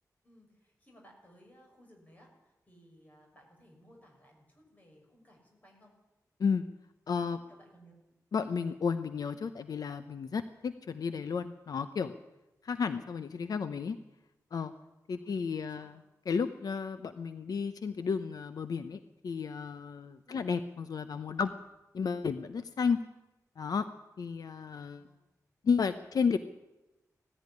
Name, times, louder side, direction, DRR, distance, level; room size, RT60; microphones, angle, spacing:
voice 1, 0.2-5.9 7.1-7.9 15.1-15.9 20.3-20.5 24.8-25.1, equal, 25° left, 0 dB, 6.2 m, -60 dB
voice 2, 7.1-7.4 8.3-12.1 12.6-14.0 14.5-14.7 15.1-16.0 16.3-21.5 21.9-23.0 23.6-23.9 24.2-25.1 25.6-26.4, left 5 dB, 75° left, 10 dB, 0.8 m, -32 dB
18.0 x 14.5 x 9.8 m, 0.98 s
wide cardioid pair, 180°, 6 cm